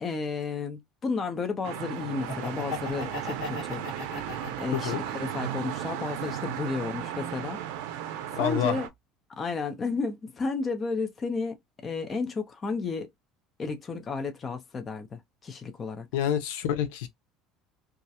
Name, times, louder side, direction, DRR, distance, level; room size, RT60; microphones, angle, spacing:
voice 1, 0.0-3.9 4.6-7.6 8.3-8.9 9.4-13.1 13.6-16.1, left 4 dB, 20° left, 0.4 m, -32 dB
sound 1, 1.6-8.9, right 11 dB, 80° right, 0.4 m, -35 dB
Laughter, 2.1-5.3 5.8-6.9, left 3 dB, 45° left, 1.2 m, -38 dB
voice 2, 4.7-5.0 8.4-8.8 16.1-17.1, left 9 dB, 90° left, 0.5 m, -27 dB
2.3 x 2.0 x 2.7 m
cardioid pair, 165°, 0 cm